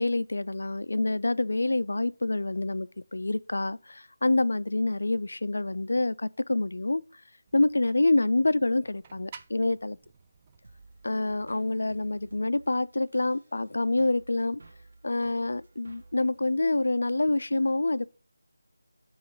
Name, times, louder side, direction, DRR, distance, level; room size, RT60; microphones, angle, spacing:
voice 1, 0.0-7.0 7.5-10.0 11.0-14.6 15.0-18.1, left 2 dB, 75° left, 0.4 m, -27 dB
sound 1, 7.5-12.5, right 6 dB, 20° right, 0.4 m, -54 dB
sound 2, 10.6-17.3, right 3 dB, 60° right, 1.2 m, -55 dB
8.6 x 3.1 x 5.3 m
figure-of-eight pair, 170°, 0 cm